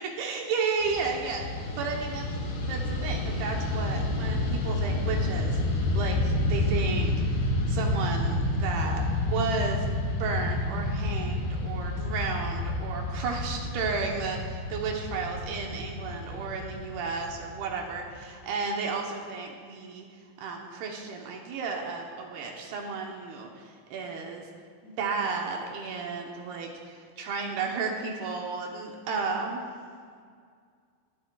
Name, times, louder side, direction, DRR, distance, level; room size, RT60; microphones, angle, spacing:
voice 1, 0.2-1.4 1.8-2.3 2.7-7.4 7.7-9.9 10.2-14.4 14.7-20.1 20.4-24.5 24.8-29.6, right 4 dB, 75° right, 1 dB, 2.4 m, -33 dB
Fixed-wing aircraft airplane, 0.8-18.2, left 2 dB, 80° left, 4.1 m, -29 dB
22.0 x 10.5 x 2.3 m, 2.1 s
omnidirectional pair, 5.6 m